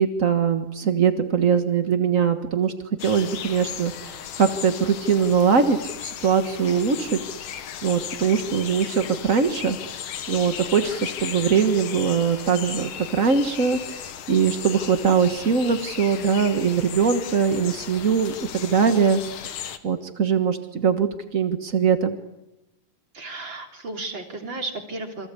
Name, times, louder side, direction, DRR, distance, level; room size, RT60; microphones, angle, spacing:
voice 1, 0.0-2.7 3.0-7.2 7.8-9.8 10.3-19.6 19.8-22.2, right 6 dB, 60° right, 7 dB, 0.8 m, -22 dB
sound 1, 3.0-19.8, left 9 dB, 75° left, 3.1 m, -36 dB
voice 2, 23.1-25.3, right 2 dB, 35° right, 3 dB, 3.9 m, -33 dB
28.0 x 25.5 x 8.4 m, 1.0 s
omnidirectional pair, 3.8 m